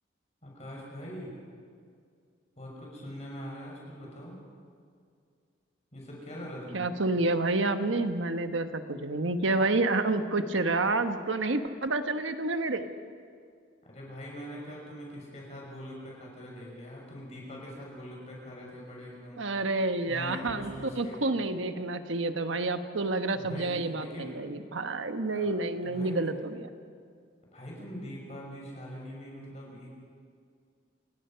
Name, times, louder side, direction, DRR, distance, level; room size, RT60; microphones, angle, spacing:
voice 1, 0.4-1.3 2.6-4.4 5.9-6.9 13.8-19.4 20.1-21.2 23.3-24.5 25.3-25.5 25.8-26.2 27.5-29.9, equal, 35° left, -2 dB, 6.5 m, -42 dB
voice 2, 6.7-12.9 19.4-20.7 21.0-26.7, right 2 dB, 85° right, 8 dB, 1.2 m, -29 dB
29.0 x 17.5 x 5.7 m, 2.2 s
head